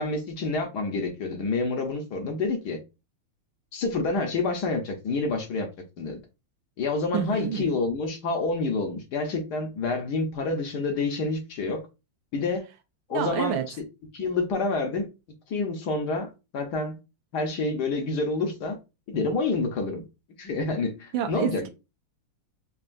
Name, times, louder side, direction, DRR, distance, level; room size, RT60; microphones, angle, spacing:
voice 1, 0.0-2.8 3.7-5.7 6.0-6.2 6.8-11.8 12.3-12.7 13.1-13.7 14.1-15.1 15.5-16.9 17.3-18.8 19.1-20.0 20.4-21.6, left 3 dB, 65° left, 1.2 m, -28 dB
voice 2, 7.1-7.8 13.1-13.7 21.1-21.7, right 9 dB, 75° right, 1.3 m, -28 dB
5.5 x 2.4 x 2.5 m
omnidirectional pair, 2.3 m